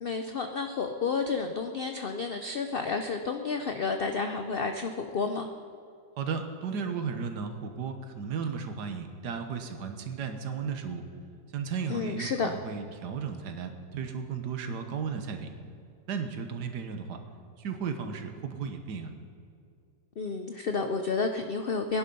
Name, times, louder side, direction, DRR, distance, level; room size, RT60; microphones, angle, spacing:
voice 1, 0.0-5.5 11.9-12.5 20.2-22.0, left 4 dB, 60° left, 6 dB, 0.6 m, -31 dB
voice 2, 6.2-11.0 11.5-15.5 16.1-17.2 17.6-19.1, right 6 dB, 75° right, 6 dB, 1.7 m, -35 dB
19.5 x 11.0 x 5.4 m, 2.4 s
omnidirectional pair, 1.8 m